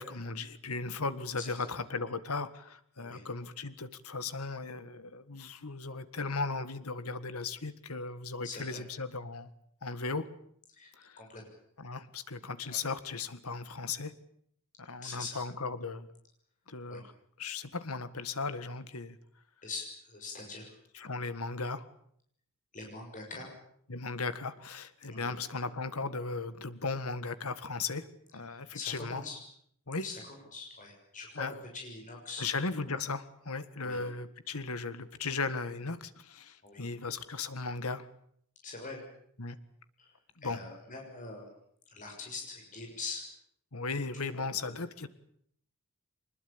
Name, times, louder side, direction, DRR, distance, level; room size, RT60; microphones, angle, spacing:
voice 1, 0.0-9.5 9.8-10.3 11.0-11.2 11.8-14.1 14.8-16.1 16.7-17.1 17.4-19.2 20.9-21.8 23.9-28.1 28.3-29.2 29.9-30.1 31.4-31.5 32.4-38.1 39.4-39.6 40.4-40.6 43.7-45.1, left 4 dB, 80° left, 13 dB, 1.7 m, -37 dB
voice 2, 8.4-8.8 10.7-11.4 12.7-12.8 15.0-15.4 16.9-17.0 19.6-20.7 22.7-23.5 25.1-25.3 28.5-29.4 30.0-30.2 30.5-32.5 33.8-34.0 36.6-36.8 38.6-39.0 40.0-40.1 40.4-41.4 41.9-43.2 44.1-44.7, left 3 dB, 35° left, 1 dB, 6.5 m, -43 dB
24.0 x 20.5 x 8.8 m, 0.68 s
head